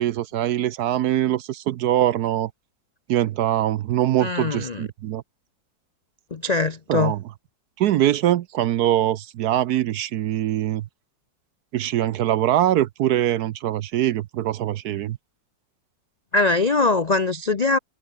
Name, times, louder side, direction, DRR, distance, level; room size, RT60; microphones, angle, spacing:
voice 1, 0.0-2.5 3.1-5.2 6.9-7.2 7.8-10.8 11.7-15.2, right 12 dB, 70° right, 1.0 m, -23 dB
voice 2, 4.2-4.9 6.3-7.1 16.3-17.8, left 3 dB, 75° left, 0.3 m, -22 dB
omnidirectional pair, 2.0 m